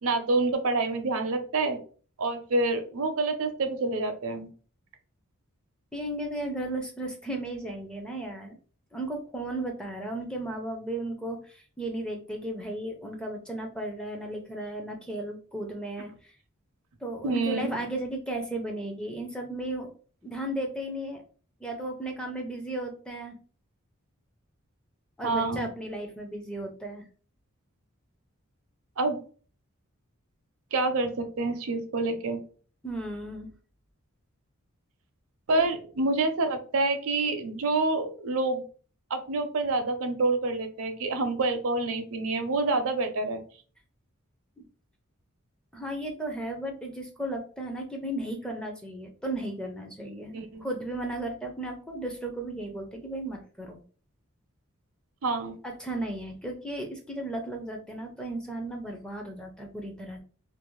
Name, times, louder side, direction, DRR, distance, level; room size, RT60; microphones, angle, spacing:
voice 1, 0.0-1.8 2.2-4.5 17.2-17.8 25.2-25.7 29.0-29.2 30.7-32.4 35.5-38.6 39.1-43.4 50.3-50.6 55.2-55.6, right 3 dB, 70° right, 7 dB, 0.5 m, -27 dB
voice 2, 5.9-8.6 8.9-16.4 17.0-19.9 20.2-21.2 21.6-23.4 25.2-27.0 32.8-33.5 35.5-35.6 44.6-44.7 45.7-53.8 55.6-60.2, right 1 dB, 5° left, 2 dB, 0.4 m, -35 dB
2.5 x 2.0 x 3.0 m, 0.40 s
head